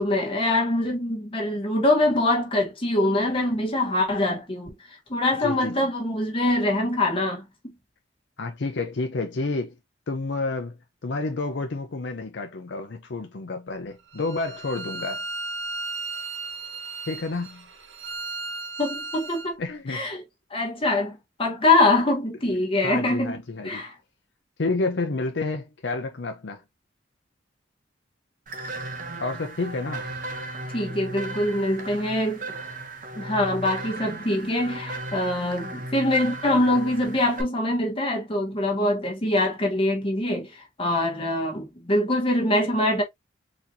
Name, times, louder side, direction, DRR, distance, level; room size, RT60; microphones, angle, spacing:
voice 1, 0.0-4.7 5.1-7.4 18.8-19.6 19.9-20.2 20.5-23.4 23.6-23.9 30.7-32.4 33.1-43.0, left 1 dB, 30° left, 1.3 m, -24 dB
voice 2, 5.4-5.9 8.4-9.8 10.1-15.3 17.1-17.7 19.6-20.0 22.8-23.9 24.6-26.6 29.2-30.1, left 3 dB, 70° left, 0.6 m, -30 dB
Bowed string instrument, 14.1-19.5, right 3 dB, 85° right, 1.1 m, -35 dB
sound 1, 28.5-37.4, right 2 dB, 45° right, 0.8 m, -36 dB
4.2 x 2.9 x 2.6 m
head